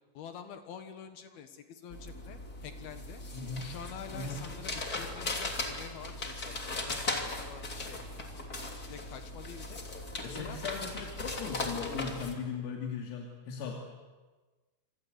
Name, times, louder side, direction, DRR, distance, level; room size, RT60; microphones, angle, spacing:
voice 1, 0.1-3.2 3.6-8.0 8.8-9.8 10.3-10.6, left 8 dB, 65° left, 8 dB, 2.7 m, -47 dB
sound 1, 1.9-12.3, left 2 dB, 25° left, 2.3 m, -38 dB
voice 2, 3.3-3.7 4.1-4.4 10.2-13.7, left 5 dB, 85° left, 0 dB, 5.4 m, -38 dB
26.5 x 26.5 x 8.2 m, 1.3 s
omnidirectional pair, 6.0 m